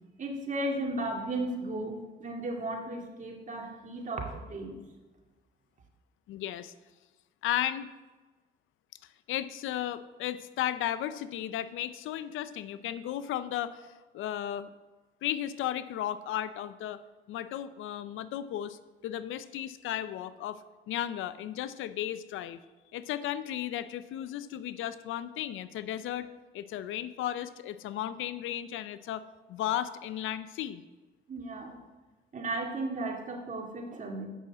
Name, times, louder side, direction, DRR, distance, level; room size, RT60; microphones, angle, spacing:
voice 1, 0.2-4.8 31.3-31.8 32.3-34.3, right 2 dB, 40° right, 1 dB, 2.2 m, -35 dB
voice 2, 6.3-6.7 7.4-7.9 9.3-14.7 15.2-17.0 17.3-22.6 22.9-30.8, left 11 dB, 85° left, 14 dB, 0.5 m, -35 dB
8.1 x 6.4 x 7.3 m, 1.2 s
cardioid pair, 90°, 20 cm